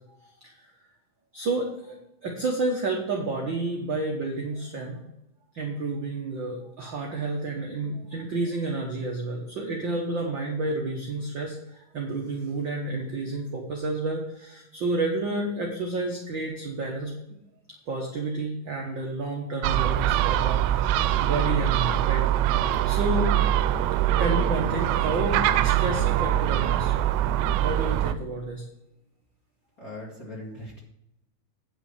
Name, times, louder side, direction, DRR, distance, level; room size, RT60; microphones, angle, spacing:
voice 1, 1.3-5.0 5.5-17.1 17.9-22.3 22.8-23.4 24.0-26.9 27.6-28.6, right 2 dB, 65° right, 0 dB, 1.1 m, -30 dB
Gull seagull, 19.6-28.1, right 12 dB, 85° right, 2.2 m, -23 dB
voice 2, 29.8-30.8, left 1 dB, 35° left, -3 dB, 1.8 m, -39 dB
9.4 x 6.3 x 5.8 m, 0.85 s
omnidirectional pair, 4.0 m